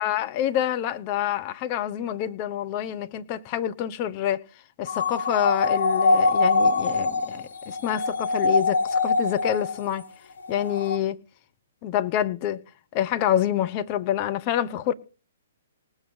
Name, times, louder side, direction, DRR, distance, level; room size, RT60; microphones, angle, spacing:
voice 1, 0.0-4.4 4.8-10.0 10.5-11.2 11.8-12.6 12.9-14.9, left 11 dB, 35° left, 1.0 m, -27 dB
sound 1, 4.9-10.0 10.4-11.0, left 3 dB, 65° left, 0.8 m, -23 dB
19.5 x 7.9 x 4.3 m
figure-of-eight pair, 120°, 0 cm